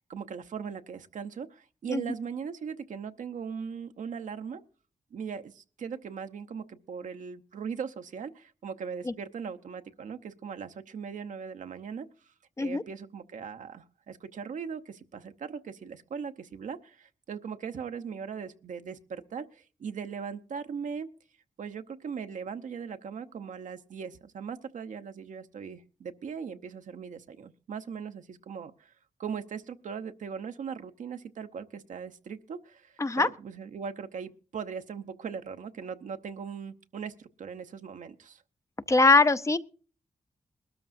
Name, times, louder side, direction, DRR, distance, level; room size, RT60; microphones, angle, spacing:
voice 1, 0.1-4.6 5.1-21.1 21.6-28.9 29.2-38.4, right 6 dB, 85° right, 0.8 m, -39 dB
voice 2, 38.9-39.6, left 3 dB, 25° left, 0.5 m, -22 dB
21.0 x 13.0 x 2.6 m
wide cardioid pair, 110°, 13 cm